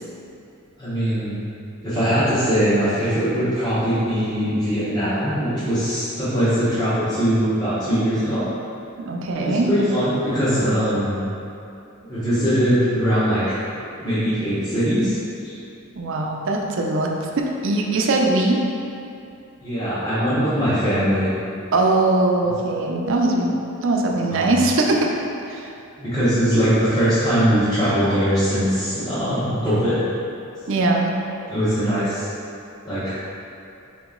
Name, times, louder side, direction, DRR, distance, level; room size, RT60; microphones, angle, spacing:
voice 1, 0.8-1.4 1.8-8.4 9.4-11.2 12.1-13.6 14.0-15.2 15.4-15.5 19.6-21.3 24.3-24.5 26.0-30.0 31.5-32.3 32.8-33.1, equal, 20° left, -13 dB, 1.0 m, -21 dB
voice 2, 9.1-9.7 15.9-17.1 17.4-18.6 21.7-23.5 23.8-25.1 25.5-25.7 30.7-31.1, right 2 dB, 60° right, 0 dB, 0.5 m, -20 dB
4.4 x 3.0 x 3.6 m, 2.6 s
head